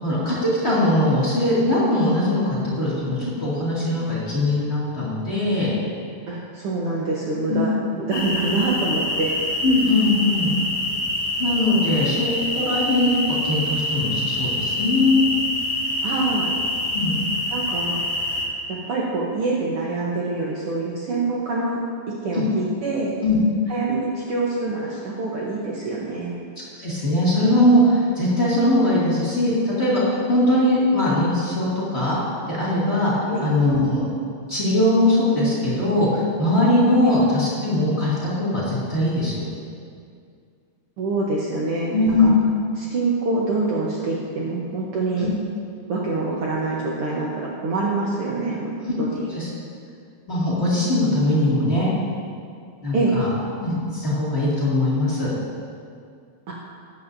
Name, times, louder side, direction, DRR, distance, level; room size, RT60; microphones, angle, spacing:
voice 1, 0.0-5.7 7.5-7.6 9.6-10.5 11.4-15.2 16.9-17.2 22.3-22.4 23.2-23.3 26.8-32.2 32.5-33.1 33.4-34.0 34.5-39.5 41.9-42.3 45.2-45.3 48.8-48.9 49.3-49.5 50.3-51.9 52.8-53.3 53.6-55.3, left 1 dB, 25° left, -8 dB, 2.4 m, -21 dB
voice 2, 6.3-7.7 8.0-9.4 16.0-16.5 17.5-18.1 18.7-23.1 23.7-26.3 33.3-33.5 41.0-42.3 42.8-45.3 45.9-49.3 52.9-53.2 56.5-56.6, right 3 dB, 60° right, -4 dB, 1.7 m, -25 dB
sound 1, 8.1-18.4, left 1 dB, 50° left, 2.8 m, -26 dB
13.5 x 10.5 x 2.7 m, 2.3 s
omnidirectional pair, 3.3 m